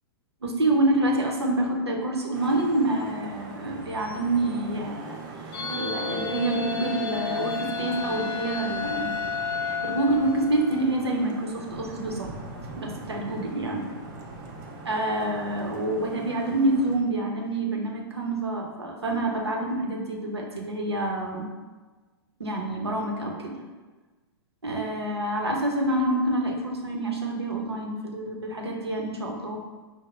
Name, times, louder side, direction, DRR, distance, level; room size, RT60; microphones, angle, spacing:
voice 1, 0.4-5.2 5.4-9.1 9.6-12.3 12.8-13.8 14.8-21.5 22.4-23.5 24.6-29.6, right 1 dB, 90° right, 0 dB, 0.8 m, -27 dB
Vehicle horn car horn honking / Traffic noise roadway noise, 2.3-17.0, right 2 dB, 45° right, 0.6 m, -41 dB
sound 1, 5.5-10.9, left 5 dB, 55° left, 0.5 m, -31 dB
5.2 x 2.1 x 3.0 m, 1.3 s
figure-of-eight pair, 105°, 13 cm